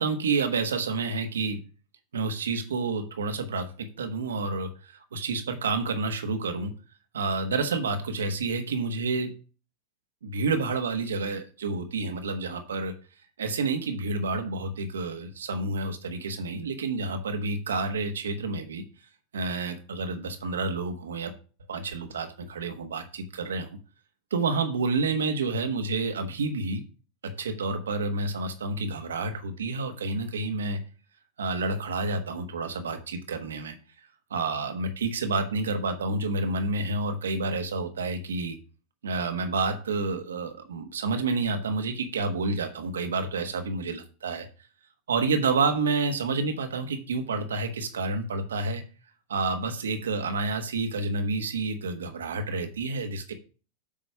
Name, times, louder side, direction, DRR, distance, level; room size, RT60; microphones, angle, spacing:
voice 1, 0.0-1.6 2.1-6.7 7.1-9.3 10.2-12.9 13.4-18.8 19.3-21.3 21.7-23.7 24.3-26.8 27.2-30.8 31.4-33.7 34.3-38.6 39.0-44.5 45.1-48.8 49.3-53.3, right 3 dB, 80° right, 6 dB, 1.2 m, -29 dB
8.5 x 3.0 x 5.6 m, 0.36 s
hypercardioid pair, 95°, 0 cm